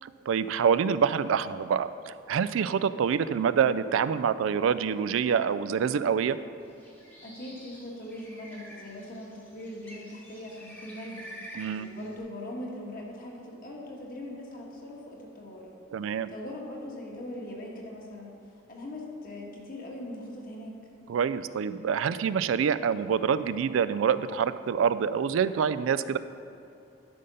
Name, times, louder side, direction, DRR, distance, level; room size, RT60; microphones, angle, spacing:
voice 1, 0.0-6.4 11.5-11.9 15.9-16.3 21.1-26.2, right 7 dB, 80° right, 14 dB, 0.3 m, -26 dB
Bird, 6.7-12.2, equal, 10° left, 1.1 m, -48 dB
voice 2, 7.2-11.3 11.8-15.7 16.3-18.3 18.7-20.8, left 1 dB, 45° left, -2 dB, 1.6 m, -41 dB
12.5 x 5.2 x 5.5 m, 2.8 s
head